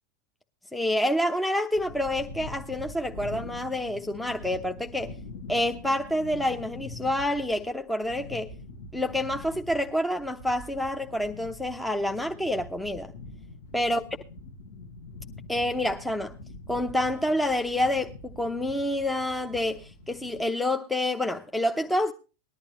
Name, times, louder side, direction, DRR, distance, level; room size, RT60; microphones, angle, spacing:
voice 1, 0.7-5.1 5.5-8.5 8.9-13.1 13.7-14.0 15.5-16.4 16.7-22.1, left 1 dB, 5° left, 0.8 m, -28 dB
sound 1, 1.7-20.4, left 2 dB, 65° left, 1.6 m, -44 dB
19.5 x 11.5 x 2.9 m
figure-of-eight pair, 90°, 0 cm